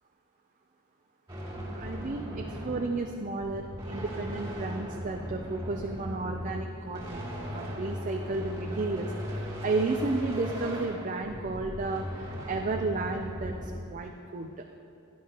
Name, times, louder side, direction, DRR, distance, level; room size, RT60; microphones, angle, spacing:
sound 1, 1.3-13.7, equal, 20° right, 2.6 m, -38 dB
voice 1, 1.7-7.3 7.5-14.6, right 3 dB, 35° right, 3 dB, 0.5 m, -33 dB
17.0 x 10.0 x 2.9 m, 2.9 s
head